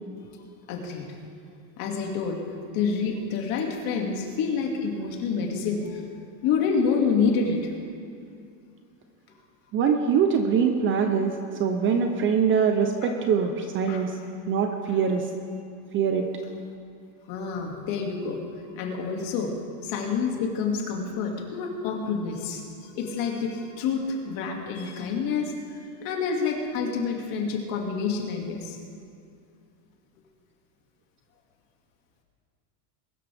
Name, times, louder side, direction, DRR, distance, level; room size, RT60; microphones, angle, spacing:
voice 1, 0.7-1.0 1.8-2.4 2.7-6.0 6.4-7.7 13.9-14.5 17.3-18.4 18.7-19.5 19.8-28.8, left 5 dB, 45° left, 1 dB, 2.4 m, -28 dB
voice 2, 9.7-14.1 14.5-15.3 15.9-16.3, right 6 dB, 25° right, 5 dB, 0.7 m, -23 dB
22.0 x 13.0 x 3.5 m, 2.5 s
supercardioid pair, 155°, 49 cm